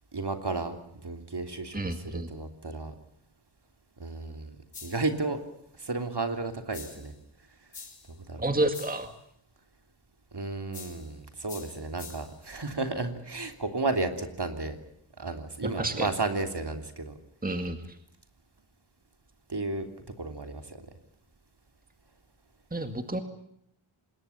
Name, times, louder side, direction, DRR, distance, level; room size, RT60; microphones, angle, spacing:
voice 1, 0.1-0.8 1.0-2.9 4.0-5.4 5.8-7.1 8.3-8.4 10.3-14.8 15.2-17.1 19.5-19.9 20.2-20.8, right 3 dB, 50° right, 6 dB, 3.3 m, -33 dB
voice 2, 1.7-2.3 8.4-9.1 15.8-16.1 17.4-18.0 22.7-23.2, right 1 dB, 15° right, 7 dB, 2.1 m, -30 dB
sound 1, 4.7-5.2 6.7-7.2 7.7-8.2 8.7-9.1 10.7-11.1 11.5-12.4, left 4 dB, 80° left, 4.1 m, -46 dB
26.0 x 21.5 x 7.2 m, 0.76 s
wide cardioid pair, 80°, 50 cm